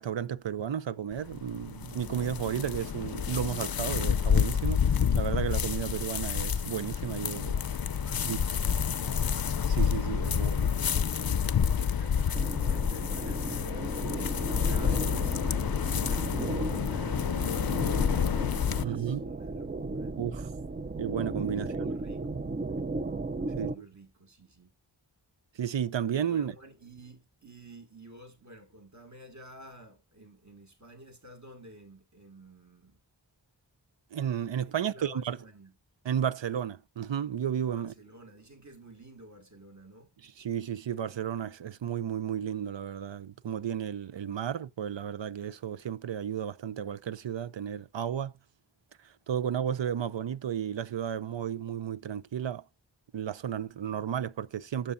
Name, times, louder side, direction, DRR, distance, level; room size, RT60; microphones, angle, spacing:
voice 1, 0.0-7.6 8.2-8.4 9.7-10.7 18.8-19.3 20.2-20.5 21.0-21.9 23.6-23.9 25.6-26.5 34.1-35.4 36.0-37.9 40.2-48.3 49.0-52.6 53.1-54.9, right 9 dB, 80° right, 0.6 m, -33 dB
sound 1, 1.1-18.8, left 7 dB, 55° left, 0.5 m, -29 dB
voice 2, 8.0-9.5 10.2-13.5 14.0-20.1 21.4-22.4 23.5-24.7 26.3-33.0 34.6-35.7 37.7-40.1, right 1 dB, 40° right, 2.1 m, -52 dB
sound 2, 12.3-23.8, right 3 dB, 25° right, 0.5 m, -36 dB
12.5 x 7.3 x 2.5 m
wide cardioid pair, 40°, 44 cm